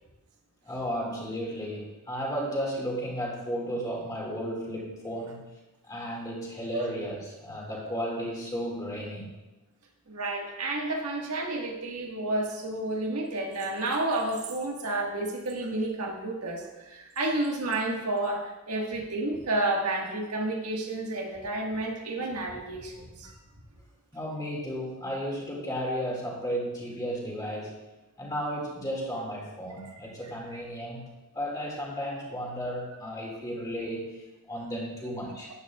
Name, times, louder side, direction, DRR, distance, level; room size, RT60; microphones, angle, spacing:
voice 1, 0.6-5.4 5.8-9.4 24.1-27.7 28.2-35.5, equal, 15° left, -3 dB, 2.0 m, -34 dB
voice 2, 10.1-23.3, right 2 dB, 85° right, 0 dB, 1.6 m, -31 dB
12.5 x 9.4 x 2.4 m, 1.0 s
head